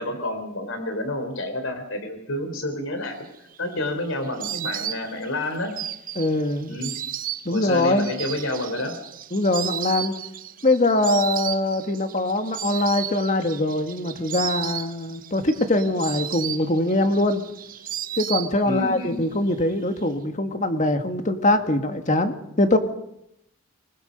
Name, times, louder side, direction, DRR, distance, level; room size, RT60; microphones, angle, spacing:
voice 1, 0.0-3.2 3.6-5.7 6.7-6.9 7.5-9.0 18.6-19.2, left 1 dB, 85° left, 7 dB, 3.8 m, -29 dB
Insect, 3.3-19.0 19.2-20.0, right 11 dB, 45° right, 0.7 m, -34 dB
voice 2, 6.2-6.7 7.5-8.1 9.3-10.1 10.6-17.4 18.2-22.8, left 1 dB, 40° left, 7 dB, 1.8 m, -22 dB
25.0 x 20.0 x 5.3 m, 0.78 s
head